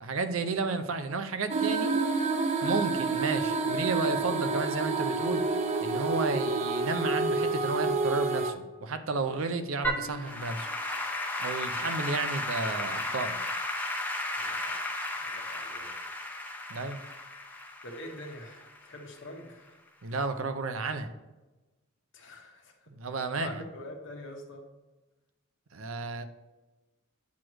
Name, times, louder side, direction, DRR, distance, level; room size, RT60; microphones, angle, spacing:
voice 1, 0.0-1.9 2.6-5.4 5.8-10.7 11.4-13.4 16.7-17.0 20.0-21.1 23.0-23.6 25.7-26.2, right 3 dB, 75° right, 9 dB, 0.6 m, -32 dB
sound 1, 1.5-8.5, right 3 dB, 35° right, 0.5 m, -28 dB
Applause / Keyboard (musical), 9.8-19.2, left 1 dB, 10° left, 0.6 m, -34 dB
voice 2, 11.7-12.2 14.3-14.8 15.2-15.9 17.8-19.8 22.1-22.9 23.3-24.6, left 1 dB, 60° left, 2 dB, 1.1 m, -45 dB
8.3 x 3.1 x 6.1 m, 1.1 s
head